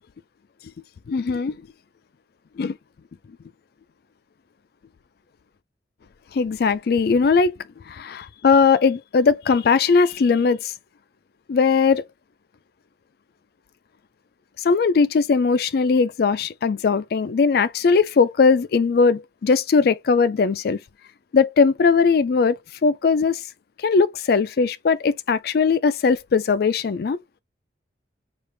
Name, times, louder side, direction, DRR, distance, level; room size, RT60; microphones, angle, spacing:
voice 1, 1.1-1.6 2.6-2.8 6.3-7.6 7.9-10.7 11.5-12.0 14.6-20.8 21.3-23.4 23.8-27.2, left 5 dB, 60° left, 0.4 m, -19 dB
5.0 x 2.4 x 3.2 m
head